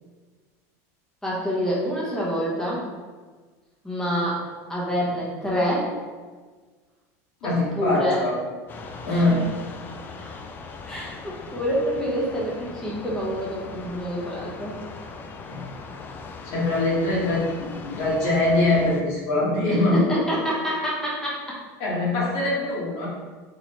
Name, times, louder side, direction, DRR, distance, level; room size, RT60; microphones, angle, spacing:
voice 1, 1.2-2.8 3.8-4.4 4.7-5.9 7.4-8.2 9.1-9.2 10.9-14.8 19.7-21.5, equal, 5° left, -7 dB, 1.0 m, -27 dB
voice 2, 7.4-8.3 9.0-9.4 10.2-10.3 15.5-15.7 16.4-20.0 21.8-23.1, left 2 dB, 65° left, -5 dB, 1.5 m, -23 dB
sound 1, 8.7-19.0, left 4 dB, 25° left, 0.3 m, -39 dB
4.0 x 3.0 x 3.0 m, 1.4 s
supercardioid pair, 135°, 8 cm